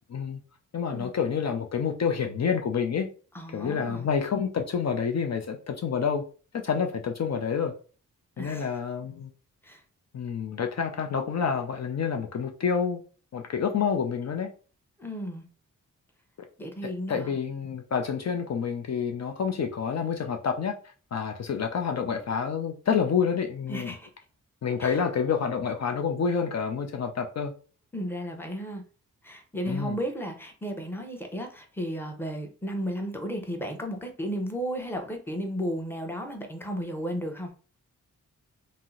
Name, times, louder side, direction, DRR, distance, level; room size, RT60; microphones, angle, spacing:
voice 1, 0.1-0.4 0.7-3.1 3.5-6.2 6.5-7.7 8.4-9.3 10.1-13.0 13.3-14.5 16.4-16.5 17.1-23.9 24.6-27.5 29.7-30.0, left 6 dB, 55° left, 4 dB, 0.5 m, -28 dB
voice 2, 3.3-4.1 8.4-8.7 9.6-9.8 15.0-15.4 16.6-17.3 23.7-24.1 24.8-25.0 27.9-28.8 29.2-37.5, equal, 5° left, 3 dB, 0.8 m, -34 dB
2.7 x 2.0 x 3.7 m, 0.38 s
cardioid pair, 65°, 33 cm